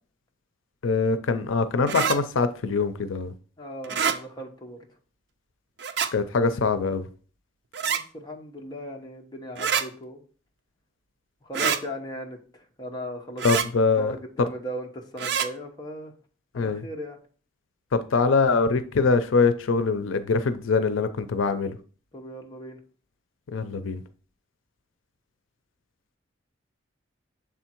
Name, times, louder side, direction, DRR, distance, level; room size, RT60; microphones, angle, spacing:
voice 1, 0.8-3.3 6.1-7.1 13.4-14.2 16.5-16.8 17.9-21.8 23.5-24.0, left 4 dB, 90° left, 0.5 m, -23 dB
sound 1, 1.9-2.2 3.8-4.2 5.8-6.1 7.7-8.0 9.6-9.8 11.5-11.8 13.4-13.7 15.2-15.5, right 7 dB, 60° right, 0.5 m, -25 dB
voice 2, 3.6-4.8 7.8-10.2 11.4-13.4 14.0-16.1 16.5-17.2 22.1-22.8, equal, 20° left, 0.9 m, -38 dB
7.1 x 3.6 x 4.4 m
head